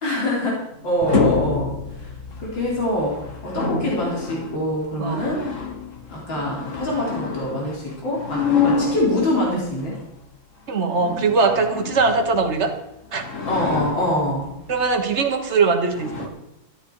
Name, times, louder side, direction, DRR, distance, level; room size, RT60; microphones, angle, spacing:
voice 1, 0.0-1.7 2.0-2.1 2.4-3.2 3.4-5.4 6.1-9.9 13.4-14.5, left 1 dB, 70° left, -4 dB, 4.5 m, -24 dB
sound 1, 0.7-10.0 10.7-12.8 13.1-14.7 15.4-15.5 15.9-16.3, left 5 dB, 40° left, 1.6 m, -27 dB
voice 2, 3.5-3.8 5.0-5.3 10.7-12.7 13.1-13.2 14.7-16.3, right 4 dB, 40° right, 5 dB, 1.5 m, -21 dB
13.0 x 12.0 x 4.9 m, 0.83 s
omnidirectional pair, 2.1 m